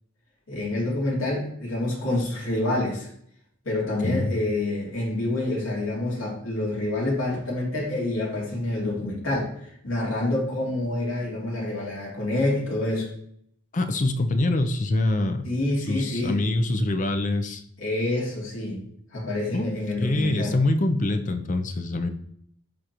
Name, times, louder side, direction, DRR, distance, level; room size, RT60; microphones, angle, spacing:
voice 1, 0.5-3.1 3.6-13.1 15.4-16.4 17.8-18.8 19.1-20.6, left 2 dB, 85° left, -5 dB, 2.7 m, -27 dB
voice 2, 4.0-4.3 13.7-15.5 15.9-17.6 19.5-19.7 20.0-22.1, left 2 dB, 40° left, 7 dB, 0.6 m, -24 dB
11.5 x 3.9 x 3.0 m, 0.67 s
head